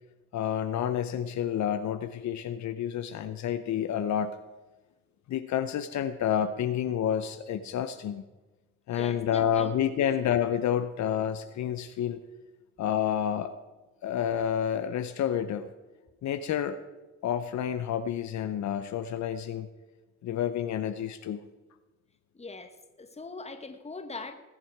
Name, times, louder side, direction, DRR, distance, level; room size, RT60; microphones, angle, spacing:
voice 1, 0.3-4.4 5.3-8.2 8.9-12.2 12.8-13.5 14.0-15.7 16.2-16.8 17.2-19.7 20.2-21.4, left 9 dB, 65° left, 10 dB, 0.7 m, -29 dB
voice 2, 8.9-10.1 22.3-24.3, left 3 dB, 20° left, 8 dB, 1.4 m, -41 dB
20.0 x 7.5 x 4.7 m, 1.2 s
cardioid pair, 90°, 30 cm